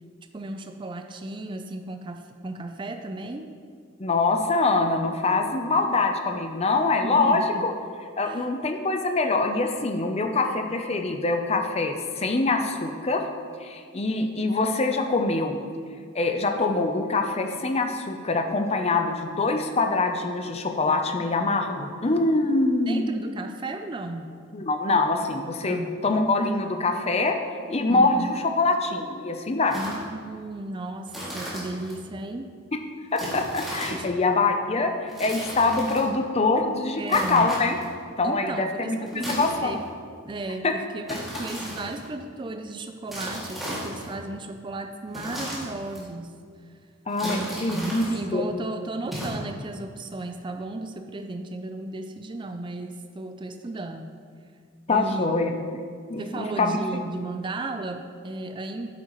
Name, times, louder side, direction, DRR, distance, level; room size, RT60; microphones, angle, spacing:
voice 1, 0.3-3.5 7.0-7.6 8.2-8.5 22.9-24.4 25.6-26.0 27.9-28.3 29.7-32.5 33.9-34.1 37.0-37.5 38.2-39.8 40.3-46.4 47.2-54.2 54.9-55.6 56.1-58.9, right 2 dB, 25° right, 6 dB, 0.4 m, -34 dB
voice 2, 4.0-7.7 8.2-13.2 13.6-15.6 16.1-23.1 24.5-25.8 26.0-27.4 27.7-29.8 33.1-34.9 35.2-37.8 38.2-39.7 40.6-40.7 47.1-48.0 48.3-48.6 54.9-55.6 56.1-57.0, left 3 dB, 30° left, 5 dB, 0.6 m, -24 dB
sound 1, 29.7-30.1 31.1-32.0 33.2-34.1 35.1-36.1 37.1-37.9 39.1-39.9 41.1-42.1 43.1-44.2 45.1-46.0 47.1-48.1 49.1-49.3, equal, ahead, 2.2 m, -35 dB
10.0 x 8.6 x 3.1 m, 2.1 s
head